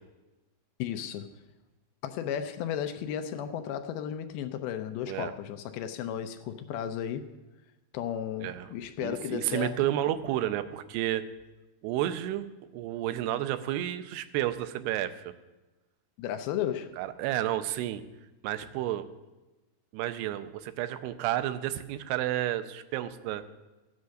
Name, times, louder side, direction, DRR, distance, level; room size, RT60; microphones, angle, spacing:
voice 1, 0.8-1.3 2.0-7.3 7.9-9.8 16.2-17.0, left 9 dB, 80° left, 2.4 m, -34 dB
voice 2, 8.4-8.7 9.0-11.3 11.8-12.5 12.7-15.3 17.0-18.0 18.4-19.1 19.9-23.4, right 13 dB, 85° right, 2.7 m, -31 dB
14.5 x 8.2 x 6.4 m
omnidirectional pair, 4.7 m